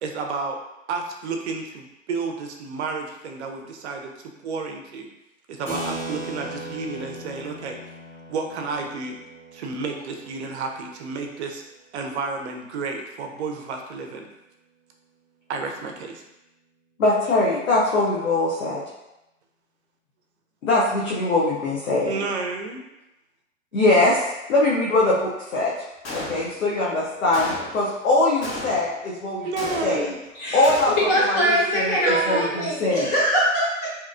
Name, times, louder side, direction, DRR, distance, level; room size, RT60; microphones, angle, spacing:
voice 1, 0.0-0.6 0.9-4.1 4.4-5.1 5.5-7.8 8.3-9.2 9.5-11.6 11.9-14.3 15.5-16.2 22.1-22.8 29.4-30.2 32.0-32.7, right 4 dB, 60° right, 3 dB, 0.5 m, -31 dB
Keyboard (musical), 5.7-11.7, right 1 dB, 5° left, 0.9 m, -38 dB
voice 2, 17.0-18.8 20.6-22.2 23.7-24.2 24.5-25.7 26.1-30.1 30.5-31.0 31.3-33.1, left 2 dB, 85° left, -5 dB, 0.7 m, -22 dB
Gunshot gunfire, 26.0-26.8 27.3-27.9 28.4-29.0 29.6-30.2 30.6-31.2, left 1 dB, 60° left, 1.1 m, -34 dB
voice 3, 30.3-33.9, equal, 35° left, -7 dB, 1.0 m, -23 dB
2.8 x 2.3 x 2.4 m, 0.94 s
hypercardioid pair, 110°, 39 cm